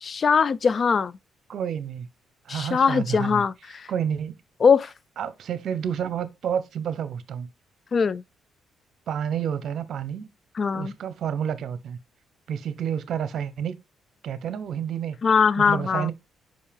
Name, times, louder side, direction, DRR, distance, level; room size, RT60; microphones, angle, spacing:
voice 1, 0.0-1.1 2.5-3.9 4.6-4.9 7.9-8.2 10.6-10.9 15.2-16.1, left 6 dB, 45° left, 0.3 m, -21 dB
voice 2, 1.5-2.1 2.5-3.4 3.9-4.4 5.2-7.5 9.1-10.3 10.7-12.0 12.5-13.8 14.2-15.2 15.6-16.1, right 8 dB, 65° right, 0.8 m, -29 dB
5.3 x 5.3 x 3.4 m
cardioid pair, 90°, 0 cm